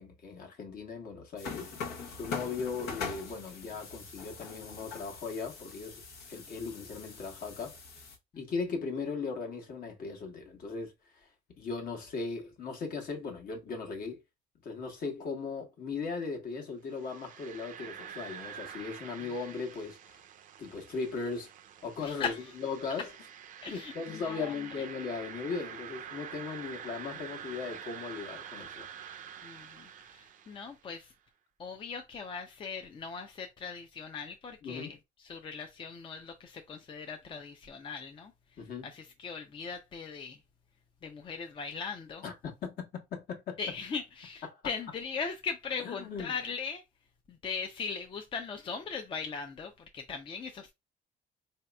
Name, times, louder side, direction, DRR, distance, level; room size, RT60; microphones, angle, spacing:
voice 1, 0.0-1.7 2.1-6.0 6.3-7.8 8.4-11.3 11.6-14.2 14.6-20.2 20.6-21.5 21.8-23.1 23.7-28.9 34.6-34.9 38.6-38.9 42.2-43.6 44.5-44.6 45.8-46.4, left 4 dB, 60° left, 1.2 m, -38 dB
sound 1, 1.4-8.2, left 5 dB, 85° left, 1.1 m, -42 dB
sound 2, 16.9-30.9, right 8 dB, 50° right, 0.5 m, -47 dB
voice 2, 22.0-22.4 23.6-24.5 29.4-31.1 31.6-35.0 35.3-38.3 38.8-40.4 41.0-42.2 43.6-46.8 47.3-50.7, left 5 dB, 30° left, 0.5 m, -39 dB
4.0 x 2.8 x 2.3 m
cardioid pair, 110°, 17 cm